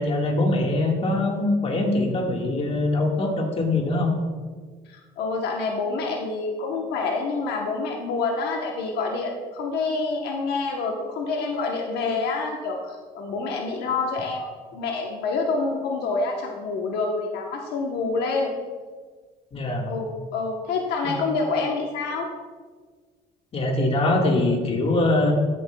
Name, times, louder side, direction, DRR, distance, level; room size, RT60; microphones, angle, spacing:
voice 1, 0.0-4.1 19.5-19.9 21.0-21.1 23.5-25.3, left 2 dB, 35° left, 1 dB, 1.7 m, -23 dB
voice 2, 4.9-18.5 19.8-22.3, left 3 dB, 80° left, 1 dB, 1.0 m, -27 dB
14.5 x 7.5 x 2.3 m, 1.5 s
cardioid pair, 110°, 17 cm